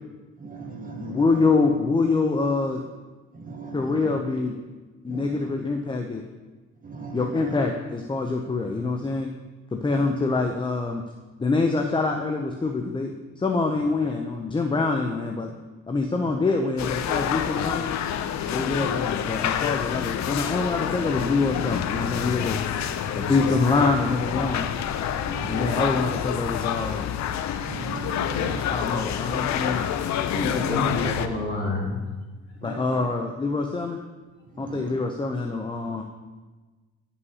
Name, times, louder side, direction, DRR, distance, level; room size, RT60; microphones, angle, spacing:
voice 1, 0.4-1.2 3.4-4.0 5.1-5.5 6.8-7.5 18.6-19.0 23.2-23.3 25.2-25.9 27.6-28.7 32.6-32.8 34.6-35.0, right 3 dB, 30° right, 2 dB, 1.0 m, -37 dB
voice 2, 1.0-2.8 3.7-4.6 5.0-6.2 7.1-9.3 9.7-11.0 11.4-15.5 15.9-17.9 18.5-22.6 23.2-24.7 25.5-27.0 28.7-29.9 30.3-31.1 32.6-34.0 34.6-36.0, left 3 dB, 15° left, 3 dB, 0.5 m, -25 dB
sound 1, 16.8-31.3, left 9 dB, 65° left, 0.5 m, -28 dB
voice 3, 30.4-31.9, left 2 dB, 35° left, -2 dB, 1.9 m, -28 dB
11.0 x 5.5 x 2.8 m, 1.3 s
cardioid pair, 90°, 30 cm